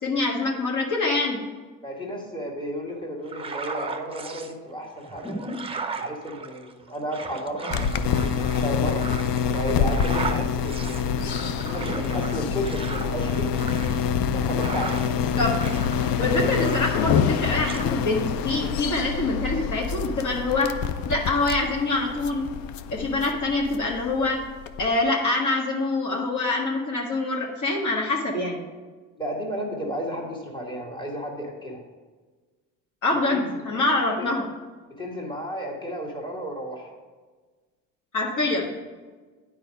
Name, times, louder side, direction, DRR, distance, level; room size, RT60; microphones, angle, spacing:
voice 1, 0.0-1.4 15.3-15.6 16.2-20.7 21.1-22.5 22.9-24.4 24.8-28.6 33.0-34.5 38.1-38.7, left 2 dB, 55° left, -1 dB, 1.6 m, -25 dB
voice 2, 1.8-5.4 6.0-7.8 8.2-9.1 9.5-13.7 14.3-15.1 29.2-31.8 33.1-33.6 34.2-34.3 35.0-36.9, equal, 10° left, -1 dB, 1.9 m, -33 dB
sound 1, 3.3-4.5 5.0-15.3 15.6-17.3 17.6-17.9, right 4 dB, 15° right, 0.6 m, -36 dB
sound 2, 7.7-24.9, left 7 dB, 70° left, 0.6 m, -26 dB
9.1 x 4.8 x 5.3 m, 1.4 s
cardioid pair, 95°, 37 cm